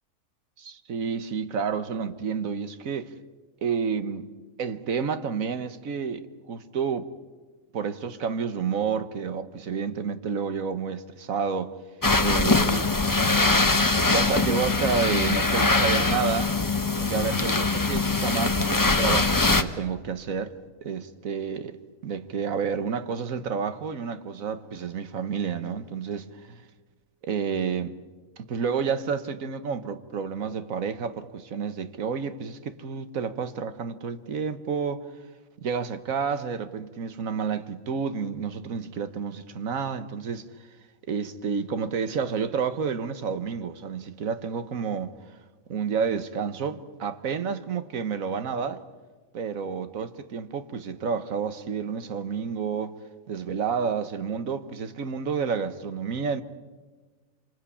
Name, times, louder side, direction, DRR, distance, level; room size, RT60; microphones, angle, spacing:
voice 1, 0.6-3.1 3.6-4.3 4.6-7.1 7.7-11.7 12.2-12.9 14.1-16.6 17.0-21.8 22.0-26.6 27.2-27.9 28.4-35.1 35.6-40.5 41.1-45.2 45.7-48.8 49.3-53.0 53.3-56.4, right 6 dB, 75° right, 1.6 m, -30 dB
sound 1, 12.0-19.6, left 3 dB, 15° left, 1.0 m, -22 dB
27.0 x 26.0 x 8.5 m
omnidirectional pair, 1.4 m